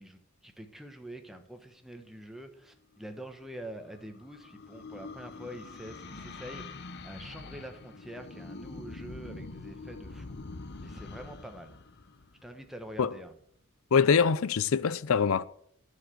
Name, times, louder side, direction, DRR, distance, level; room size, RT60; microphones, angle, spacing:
voice 1, 0.0-10.4 10.8-11.8 12.4-13.3, right 1 dB, ahead, 1.1 m, -45 dB
sound 1, 3.4-13.0, left 3 dB, 50° left, 0.8 m, -45 dB
voice 2, 13.9-15.5, left 6 dB, 70° left, 0.5 m, -24 dB
10.5 x 6.5 x 7.8 m
head